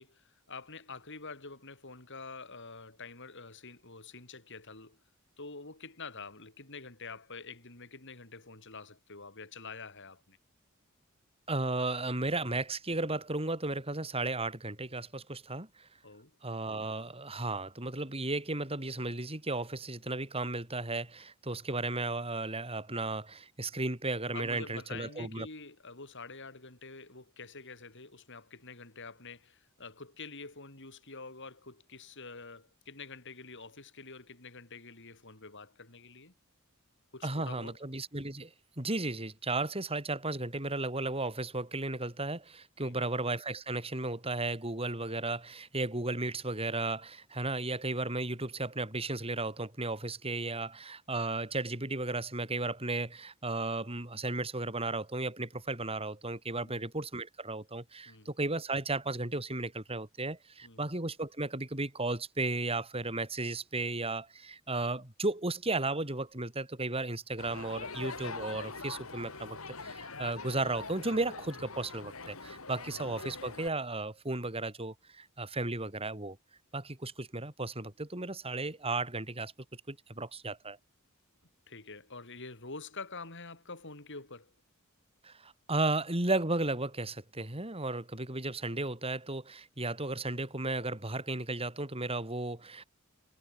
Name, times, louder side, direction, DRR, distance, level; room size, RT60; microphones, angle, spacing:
voice 1, 0.0-5.0 5.4-10.4 16.0-16.4 24.3-36.3 37.1-37.8 42.8-43.1 56.6-56.9 58.1-58.3 60.6-60.9 72.7-72.9 81.7-84.5, left 4 dB, 60° left, 7.6 m, -47 dB
voice 2, 11.5-15.9 16.4-25.5 37.2-76.4 76.7-80.8 85.2-92.8, right 2 dB, 30° right, 5.4 m, -34 dB
Crowd, 67.4-73.7, left 4 dB, 80° left, 6.3 m, -43 dB
head